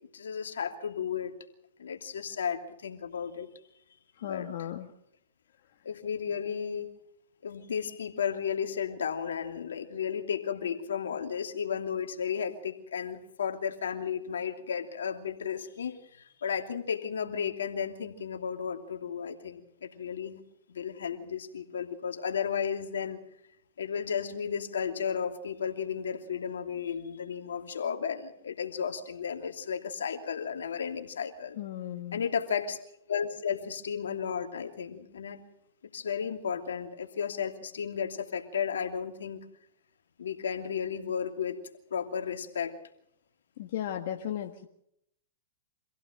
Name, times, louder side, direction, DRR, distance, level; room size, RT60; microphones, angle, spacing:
voice 1, 0.1-1.3 1.8-3.5 4.2-4.5 5.8-6.9 7.4-20.4 20.7-23.2 23.8-31.6 32.1-32.8 33.1-35.4 35.9-39.4 40.2-41.6 41.9-42.7, left 7 dB, 85° left, 5 dB, 2.7 m, -33 dB
voice 2, 4.2-4.9 31.6-32.2 43.6-44.7, left 11 dB, 60° left, 4 dB, 1.7 m, -36 dB
26.0 x 16.5 x 6.6 m, 0.75 s
hypercardioid pair, 120°, 0 cm